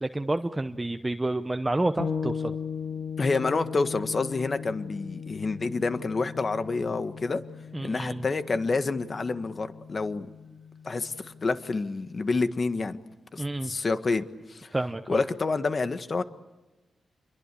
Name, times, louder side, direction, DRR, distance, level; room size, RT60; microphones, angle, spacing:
voice 1, 0.0-2.6 7.7-8.2 13.4-13.7 14.7-15.2, right 2 dB, 15° right, 8 dB, 0.9 m, -29 dB
sound 1, 2.0-11.7, left 6 dB, 60° left, 2.9 m, -38 dB
voice 2, 3.2-7.4 7.8-10.3 10.8-13.0 13.3-14.2 14.5-14.7 15.1-16.2, left 3 dB, 40° left, 10 dB, 1.6 m, -28 dB
28.5 x 23.0 x 8.5 m, 1.1 s
wide cardioid pair, 110°, 0 cm